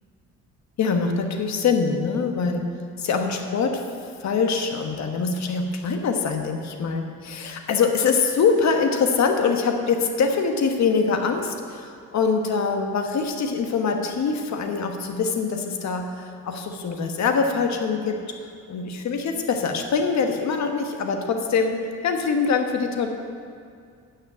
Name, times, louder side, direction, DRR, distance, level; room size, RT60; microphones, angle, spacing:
voice 1, 0.8-2.6 3.0-3.8 4.2-18.2 18.7-21.8 22.0-23.1, left 5 dB, 65° left, 4 dB, 1.4 m, -24 dB
9.6 x 6.5 x 8.6 m, 2.3 s
cardioid pair, 90°, 30 cm